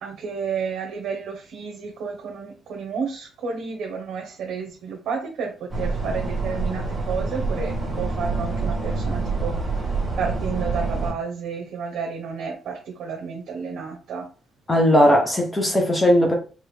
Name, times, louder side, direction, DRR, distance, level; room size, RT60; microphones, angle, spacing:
voice 1, 0.0-9.9 10.2-14.3, right 5 dB, 65° right, 0.9 m, -31 dB
sound 1, 5.7-11.1, right 3 dB, 10° right, 1.2 m, -26 dB
voice 2, 14.7-16.3, equal, 15° left, 0.7 m, -18 dB
4.8 x 2.5 x 3.2 m
cardioid pair, 160°, 0 cm